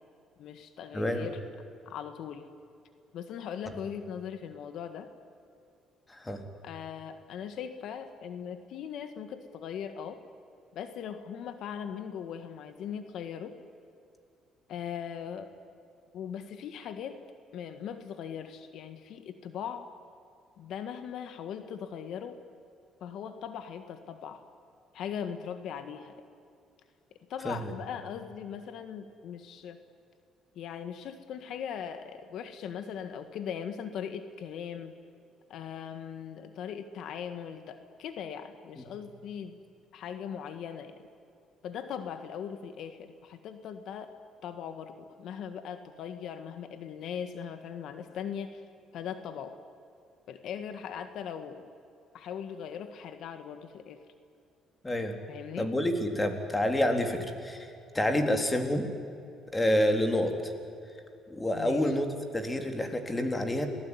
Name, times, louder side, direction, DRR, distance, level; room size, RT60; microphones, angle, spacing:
voice 1, 0.4-1.4 1.9-2.5 3.1-5.1 6.6-10.2 10.7-13.6 14.7-15.5 16.1-17.2 17.5-19.9 20.6-22.4 23.0-24.4 24.9-26.2 27.3-29.8 30.6-34.9 35.5-39.6 39.9-41.0 41.6-44.1 44.4-48.6 48.9-49.6 50.3-51.7 52.1-54.0 55.3-55.7 61.5-61.9, left 8 dB, 70° left, 9 dB, 1.7 m, -39 dB
voice 2, 0.9-1.3 6.1-6.4 27.4-27.7 38.8-38.9 54.8-55.1 55.6-57.7 57.9-58.9 59.5-60.5 61.3-62.1 62.3-63.7, left 1 dB, 15° left, 5 dB, 3.8 m, -28 dB
28.0 x 19.0 x 9.9 m, 2.6 s
cardioid pair, 100°, 0 cm